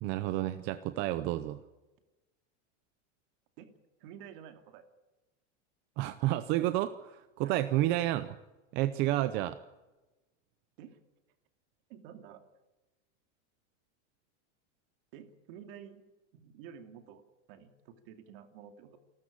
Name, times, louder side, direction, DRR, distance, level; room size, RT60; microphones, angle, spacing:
voice 1, 0.0-1.6 6.0-8.4 8.7-9.6, right 15 dB, 30° right, 11 dB, 0.6 m, -30 dB
voice 2, 4.0-4.8 7.4-7.6 10.8-11.0 11.9-12.4 15.1-16.0 16.3-19.0, right 8 dB, 50° right, 7 dB, 2.7 m, -50 dB
28.5 x 13.0 x 8.6 m, 1.1 s
supercardioid pair, 180°, 37 cm